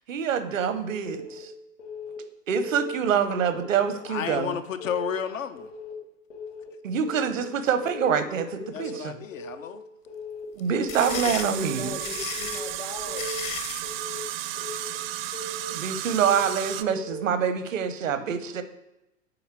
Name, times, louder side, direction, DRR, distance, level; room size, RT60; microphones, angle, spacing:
voice 1, 0.1-1.5 2.5-4.6 6.8-9.2 10.5-11.9 15.7-18.6, right 7 dB, 75° right, 11 dB, 0.8 m, -26 dB
Keyboard (musical) / Alarm, 1.0-1.4 1.8-2.2 2.5-2.9 3.3-3.7 4.0-4.4 4.8-5.2 5.6-5.9 6.3-6.7 7.1-7.4 7.8-8.2 8.6-8.9 9.3-9.7 10.1-10.4 10.8-11.2 11.6-11.9 12.3-12.7 13.1-13.5 13.8-14.2 14.6-15.0 15.3-15.7 16.1-16.5 16.8-17.2, left 1 dB, 60° left, 1.6 m, -38 dB
voice 2, 4.1-5.7 8.7-9.8, left 8 dB, 75° left, 9 dB, 0.6 m, -32 dB
sound 1, 10.6-13.9, left 9 dB, 40° left, 0.8 m, -35 dB
sound 2, 10.9-16.8, right 14 dB, 50° right, 0.5 m, -34 dB
voice 3, 11.1-13.2, left 3 dB, 15° left, 4 dB, 0.4 m, -38 dB
7.9 x 4.1 x 4.4 m, 0.91 s
hypercardioid pair, 95°, 39 cm